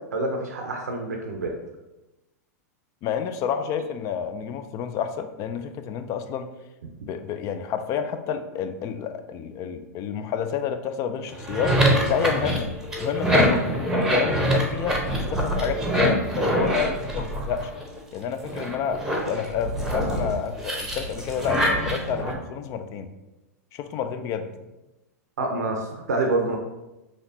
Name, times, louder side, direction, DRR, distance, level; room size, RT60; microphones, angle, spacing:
voice 1, 0.1-1.5 25.4-26.6, right 2 dB, 85° right, 2 dB, 0.5 m, -27 dB
voice 2, 3.0-6.5 7.1-12.7 13.0-17.7 18.1-23.1 23.7-24.5, left 7 dB, 40° left, 9 dB, 0.3 m, -29 dB
sound 1, 11.3-18.0 18.4-22.3, right 1 dB, 5° right, 0.8 m, -25 dB
4.2 x 3.0 x 2.7 m, 1.0 s
hypercardioid pair, 110°, 9 cm